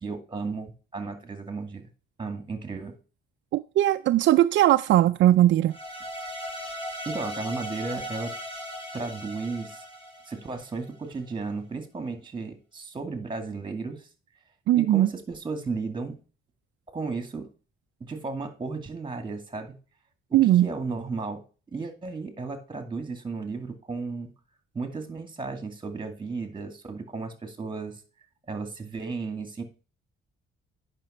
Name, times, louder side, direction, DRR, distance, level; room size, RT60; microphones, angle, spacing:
voice 1, 0.0-1.9 2.2-3.0 6.6-6.7 7.1-8.3 8.9-9.8 10.3-14.1 14.7-16.2 16.9-17.5 18.0-19.8 20.3-21.4 21.7-24.3 24.7-28.0 28.5-29.6, right 4 dB, 25° right, 2.3 m, -34 dB
voice 2, 3.5-5.7 14.7-15.1 20.3-20.7, right 14 dB, 70° right, 0.4 m, -19 dB
sound 1, 5.7-10.9, equal, 25° left, 3.1 m, -37 dB
9.1 x 6.0 x 4.3 m
cardioid pair, 90°, 20 cm